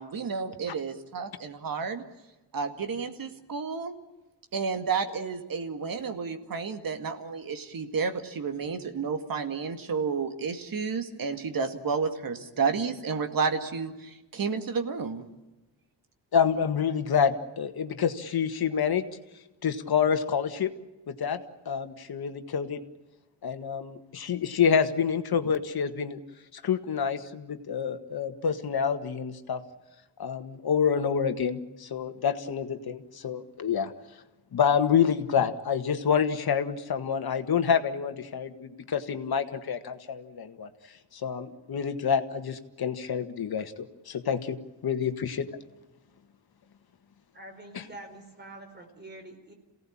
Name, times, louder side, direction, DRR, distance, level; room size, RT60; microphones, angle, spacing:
voice 1, 0.0-2.0 2.5-4.0 4.5-15.3, right 5 dB, 50° right, 7 dB, 2.2 m, -31 dB
voice 2, 16.3-19.1 19.6-20.7 21.1-21.4 21.7-22.8 23.4-26.2 26.5-29.6 30.2-33.9 34.5-40.7 41.1-45.5, left 7 dB, 60° left, 8 dB, 1.8 m, -27 dB
voice 3, 47.3-49.5, right 1 dB, 25° right, 5 dB, 4.6 m, -46 dB
27.5 x 17.5 x 8.8 m, 1.1 s
wide cardioid pair, 170°, 42 cm